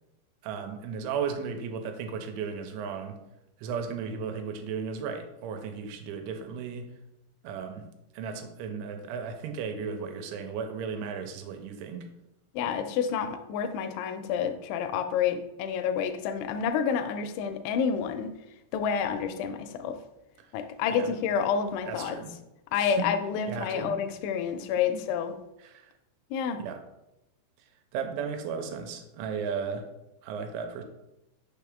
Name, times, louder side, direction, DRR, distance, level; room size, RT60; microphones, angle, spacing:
voice 1, 0.4-3.2 3.6-6.9 7.4-7.9 8.1-12.1 20.9-21.1 21.9-22.3 22.8-23.1 23.5-23.9 25.6-25.9 26.6-26.8 27.9-29.9 30.2-30.8, right 6 dB, 85° right, 6 dB, 3.0 m, -35 dB
voice 2, 12.5-18.3 18.7-20.0 20.5-22.2 22.7-25.3 26.3-26.6, left 7 dB, 85° left, 9 dB, 2.8 m, -29 dB
6.7 x 5.7 x 3.6 m, 0.92 s
omnidirectional pair, 5.4 m